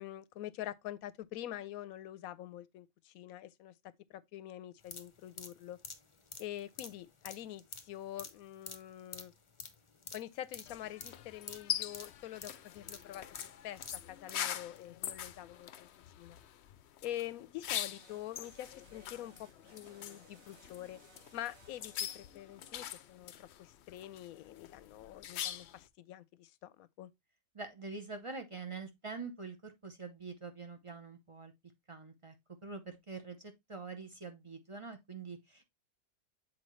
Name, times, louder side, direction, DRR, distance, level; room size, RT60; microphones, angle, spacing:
voice 1, 0.0-3.7 4.1-5.8 6.4-9.3 10.1-13.3 13.6-15.9 16.2-16.4 17.0-21.0 21.3-27.1, left 13 dB, 85° left, 1.1 m, -45 dB
sound 1, 4.8-14.4 14.8-14.9, left 4 dB, 30° left, 0.6 m, -49 dB
sound 2, 10.7-25.9, left 10 dB, 65° left, 0.7 m, -43 dB
sound 3, 17.7-23.1, right 3 dB, 70° right, 2.1 m, -63 dB
voice 2, 27.5-31.5 31.9-32.3 32.6-35.6, right 4 dB, 30° right, 0.6 m, -45 dB
7.5 x 4.5 x 3.1 m
omnidirectional pair, 1.4 m